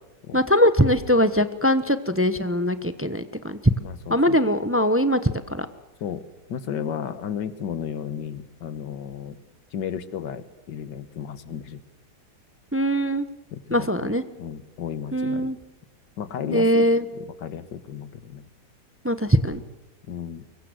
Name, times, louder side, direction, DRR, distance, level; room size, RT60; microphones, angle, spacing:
voice 1, 0.3-3.6 4.1-5.7 12.7-13.3 13.7-14.2 15.1-15.6 16.5-17.0 19.0-19.6, equal, 10° right, 12 dB, 0.7 m, -21 dB
voice 2, 3.8-4.4 6.0-9.4 9.7-11.8 13.5-14.1 14.4-15.5 16.2-16.9 17.1-18.5 20.1-20.4, left 8 dB, 80° left, 13 dB, 2.0 m, -33 dB
25.0 x 22.0 x 8.0 m, 0.95 s
omnidirectional pair, 1.9 m